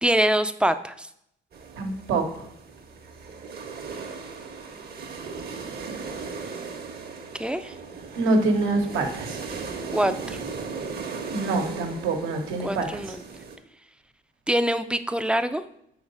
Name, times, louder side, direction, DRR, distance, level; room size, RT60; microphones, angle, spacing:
voice 1, 0.0-1.1 7.4-7.7 9.9-10.4 12.6-13.2 14.5-15.6, right 1 dB, 5° right, 11 dB, 0.3 m, -24 dB
sound 1, 1.5-13.6, right 5 dB, 50° right, 0.9 m, -37 dB
voice 2, 1.8-2.2 8.2-9.4 11.3-13.0, right 2 dB, 85° right, 4 dB, 1.1 m, -25 dB
4.8 x 4.0 x 5.3 m, 0.74 s
cardioid pair, 90°, 20 cm